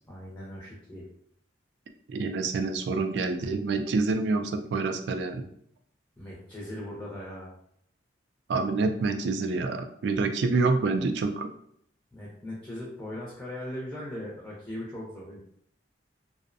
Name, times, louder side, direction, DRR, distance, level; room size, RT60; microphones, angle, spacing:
voice 1, 0.1-1.1 6.2-7.5 12.1-15.4, left 1 dB, 10° left, -5 dB, 0.5 m, -39 dB
voice 2, 2.1-5.5 8.5-11.5, right 3 dB, 70° right, 6 dB, 0.3 m, -27 dB
2.5 x 2.0 x 2.5 m, 0.68 s
head